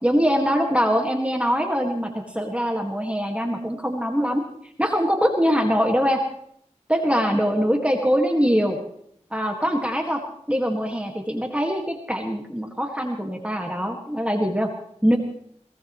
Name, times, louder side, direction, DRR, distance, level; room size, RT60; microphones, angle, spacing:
voice 1, 0.0-4.4 4.8-6.2 6.9-8.8 9.3-10.2 10.5-14.7 15.0-15.2, equal, 10° right, 2 dB, 1.9 m, -23 dB
22.5 x 17.5 x 3.2 m, 0.69 s
wide cardioid pair, 40°, 12 cm